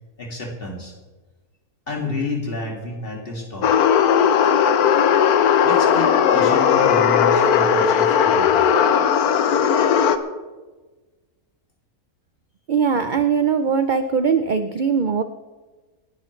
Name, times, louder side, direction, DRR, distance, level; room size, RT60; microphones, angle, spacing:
voice 1, 0.2-0.9 1.9-3.8 5.6-8.7, left 2 dB, 40° left, -1 dB, 2.6 m, -30 dB
sound 1, 3.6-10.2, left 8 dB, 80° left, 1.3 m, -17 dB
voice 2, 12.7-15.2, right 6 dB, 65° right, 9 dB, 0.5 m, -20 dB
29.0 x 10.5 x 3.2 m, 1.3 s
omnidirectional pair, 1.6 m